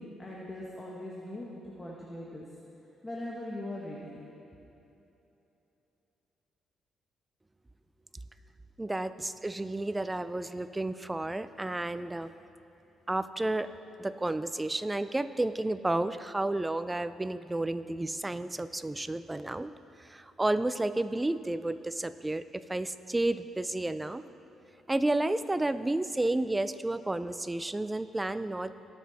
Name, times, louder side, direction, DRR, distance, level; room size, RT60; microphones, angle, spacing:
voice 1, 0.0-2.4 3.0-4.2, left 1 dB, 15° left, -4 dB, 1.4 m, -40 dB
voice 2, 8.8-12.3 13.1-13.7 14.0-19.7 20.0-24.2 24.9-28.9, right 2 dB, 15° right, 13 dB, 0.4 m, -31 dB
18.0 x 6.3 x 4.1 m, 3.0 s
cardioid pair, 90°, 0 cm